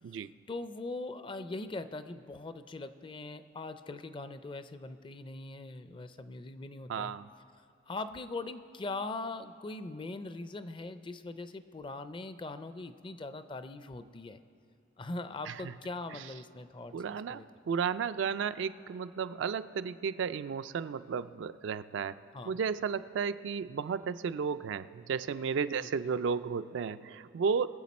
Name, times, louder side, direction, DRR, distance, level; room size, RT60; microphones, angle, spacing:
voice 1, 0.5-7.1 7.9-14.4 15.0-17.5 22.3-22.6 25.8-25.9, left 2 dB, 25° left, 11 dB, 0.4 m, -41 dB
voice 2, 6.9-7.3 15.5-15.7 16.1-16.2 16.9-22.2 22.5-27.7, right 6 dB, 65° right, 13 dB, 0.3 m, -33 dB
22.5 x 7.7 x 4.2 m, 2.4 s
head